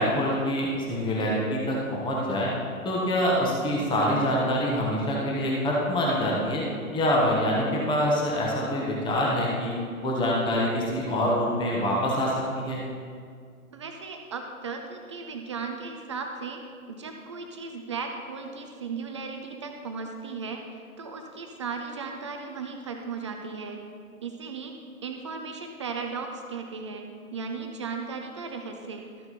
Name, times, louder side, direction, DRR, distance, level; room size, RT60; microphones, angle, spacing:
voice 1, 0.0-2.5 2.8-6.6 6.9-9.7 10.0-12.8, equal, 10° left, -4 dB, 1.3 m, -25 dB
voice 2, 13.7-16.6 16.9-23.8 24.2-24.8 25.0-27.0 27.3-29.0, right 4 dB, 20° right, 4 dB, 0.4 m, -36 dB
13.0 x 6.6 x 4.2 m, 2.2 s
figure-of-eight pair, 120°, 44 cm